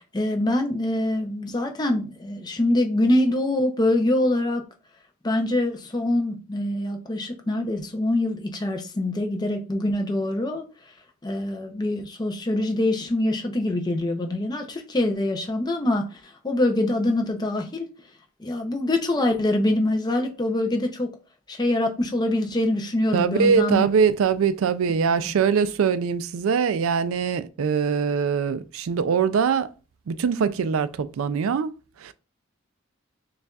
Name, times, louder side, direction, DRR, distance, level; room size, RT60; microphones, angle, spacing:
voice 1, 0.1-4.6 5.2-10.6 11.2-17.9 18.4-21.1 21.5-23.9 25.1-25.3, left 1 dB, 20° left, 0.5 m, -24 dB
voice 2, 23.1-29.7 30.1-31.7 32.0-32.1, right 6 dB, 85° right, 0.4 m, -22 dB
6.5 x 2.4 x 2.3 m
head